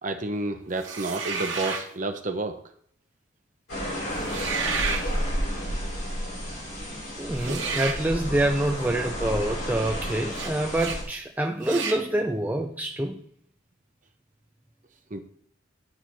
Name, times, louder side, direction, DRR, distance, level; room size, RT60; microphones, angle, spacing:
voice 1, 0.0-2.6 7.5-7.7 15.1-15.2, right 2 dB, 40° right, 6 dB, 0.8 m, -30 dB
sound 1, 0.8-1.9 4.2-5.0 7.4-8.0 10.3-10.5 10.8-11.0 11.6-12.0, right 5 dB, 60° right, 1.3 m, -31 dB
sound 2, 3.7-11.0, equal, 75° left, 4.2 m, -31 dB
voice 2, 7.2-13.2, right 1 dB, 10° right, 2 dB, 0.4 m, -26 dB
11.0 x 4.6 x 4.5 m, 0.63 s
head